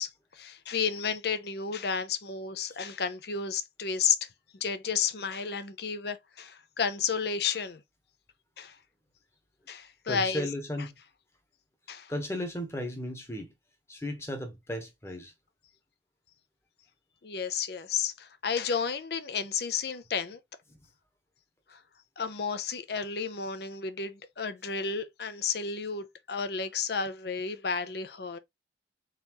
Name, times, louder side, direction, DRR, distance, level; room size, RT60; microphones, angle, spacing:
voice 1, 0.0-4.3 4.6-7.8 8.6-8.8 9.7-10.5 11.9-12.1 17.2-20.4 21.7-21.8 22.2-28.4, left 6 dB, 60° left, 0.6 m, -32 dB
voice 2, 10.1-10.9 12.1-13.5 13.9-15.3 20.7-20.8, left 1 dB, 15° left, 1.1 m, -35 dB
4.0 x 4.0 x 3.0 m
head